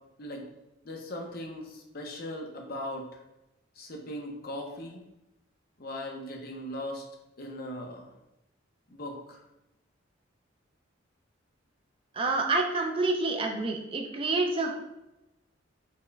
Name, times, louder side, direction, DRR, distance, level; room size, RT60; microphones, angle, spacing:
voice 1, 0.8-3.2 3.8-5.0 5.8-7.1 7.4-8.1 8.9-9.4, left 1 dB, 50° left, 2 dB, 0.6 m, -39 dB
voice 2, 12.1-14.8, right 3 dB, 30° right, 2 dB, 0.3 m, -28 dB
4.2 x 2.1 x 3.3 m, 0.92 s
head